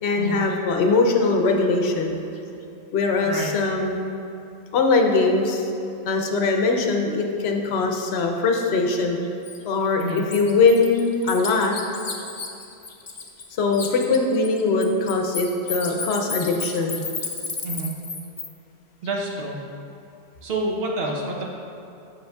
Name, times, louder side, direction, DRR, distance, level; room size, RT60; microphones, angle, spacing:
voice 1, 0.0-2.2 2.9-4.0 4.7-5.7 6.0-9.2 9.6-11.7 13.6-17.0, left 3 dB, 75° left, 3 dB, 0.9 m, -21 dB
voice 2, 3.2-3.6 10.0-10.2 17.6-17.9 19.0-19.6 20.4-21.4, right 2 dB, 65° right, -1 dB, 1.0 m, -28 dB
Bird, 9.4-9.6 10.0-13.5 13.7-18.5, left 5 dB, 45° left, 0.4 m, -32 dB
7.8 x 5.8 x 2.3 m, 2.6 s
omnidirectional pair, 1.1 m